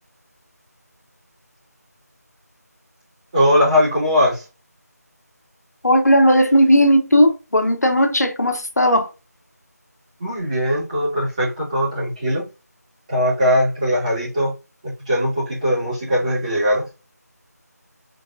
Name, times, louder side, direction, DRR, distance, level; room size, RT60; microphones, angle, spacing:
voice 1, 3.3-4.4 10.2-12.4 13.1-14.5 15.1-16.8, equal, 25° right, 2.5 m, -20 dB
voice 2, 5.8-9.1, equal, 70° left, 1.1 m, -16 dB
4.1 x 4.0 x 2.6 m
figure-of-eight pair, 165°, 9 cm